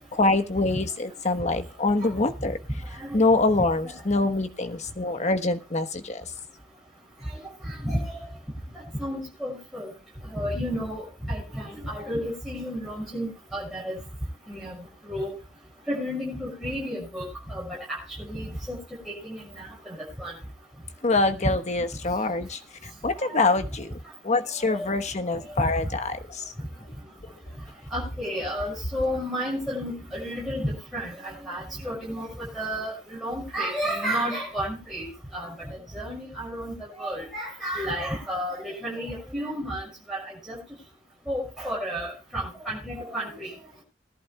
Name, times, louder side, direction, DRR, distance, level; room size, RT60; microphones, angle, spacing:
voice 1, 0.1-2.6 3.1-6.2 21.0-22.6 23.0-23.9 24.2-26.4, left 2 dB, 40° left, 8 dB, 1.1 m, -25 dB
voice 2, 3.0-3.6 3.8-4.2 7.6-8.2 9.0-9.9 10.3-14.0 14.5-14.7 15.1-15.3 15.9-17.6 17.9-18.8 19.0-20.3 23.2-23.4 24.6-24.9 27.9-40.6 41.3-43.5, equal, ahead, -8 dB, 6.4 m, -32 dB
21.5 x 11.0 x 2.2 m, 0.31 s
head